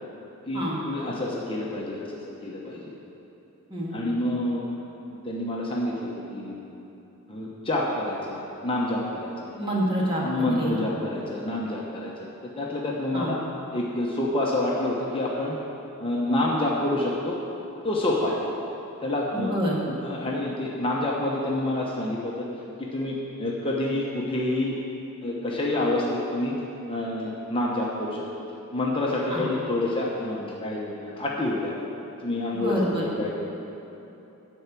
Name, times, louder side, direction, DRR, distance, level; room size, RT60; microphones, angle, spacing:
voice 1, 0.5-2.9 3.9-4.6 5.2-6.8 7.3-9.5 10.2-12.3 12.6-13.4 13.7-15.6 16.0-17.4 17.8-18.4 19.0-19.5 19.9-22.5 22.8-24.8 25.2-26.6 26.9-28.2 28.7-31.7 32.2-33.3, left 1 dB, 25° left, -4 dB, 0.9 m, -28 dB
voice 2, 9.6-10.8 13.1-13.3 19.3-19.8 29.3-29.4 32.5-33.0, equal, 25° right, -5 dB, 1.9 m, -27 dB
12.5 x 4.6 x 8.4 m, 3.0 s
head